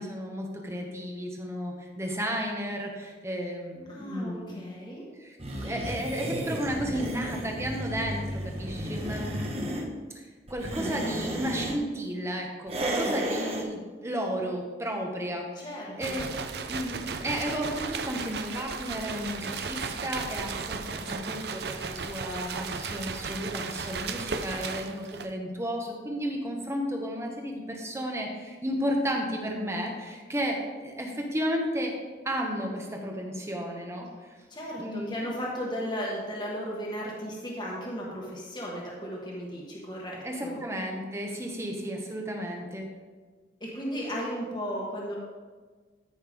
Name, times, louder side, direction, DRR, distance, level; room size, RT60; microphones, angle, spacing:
voice 1, 0.0-4.6 5.2-5.4 5.6-9.7 10.1-10.2 10.5-15.7 16.0-16.4 16.7-31.9 32.2-34.1 34.8-35.1 40.2-42.9, equal, 15° right, 1 dB, 1.2 m, -33 dB
voice 2, 3.9-5.1 15.6-16.2 34.5-40.6 43.6-45.2, equal, 25° left, -3 dB, 1.6 m, -35 dB
sound 1, 5.4-9.9 10.5-11.8 12.7-13.7, right 1 dB, 35° right, 1.2 m, -32 dB
sound 2, 16.0-25.4, right 5 dB, 60° right, 0.6 m, -35 dB
13.5 x 5.9 x 3.6 m, 1.4 s
head